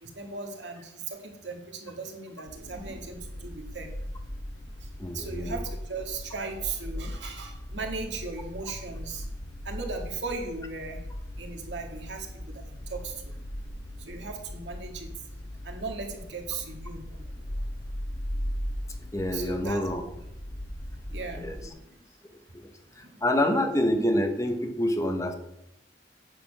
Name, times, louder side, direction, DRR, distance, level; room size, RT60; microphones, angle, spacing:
voice 1, 0.0-3.9 5.1-9.2 9.6-11.0 11.4-13.3 14.1-15.1 15.6-17.2 19.3-19.8 21.1-21.8 23.1-23.2 23.5-23.6, right 4 dB, 85° right, 3 dB, 2.0 m, -37 dB
sound 1, 2.5-21.7, equal, 90° left, 2.6 m, -38 dB
voice 2, 5.0-5.6 19.1-20.0 21.4-21.5 22.5-22.6 23.0-25.4, left 1 dB, 20° left, 6 dB, 1.1 m, -27 dB
8.9 x 6.8 x 6.5 m, 0.82 s
head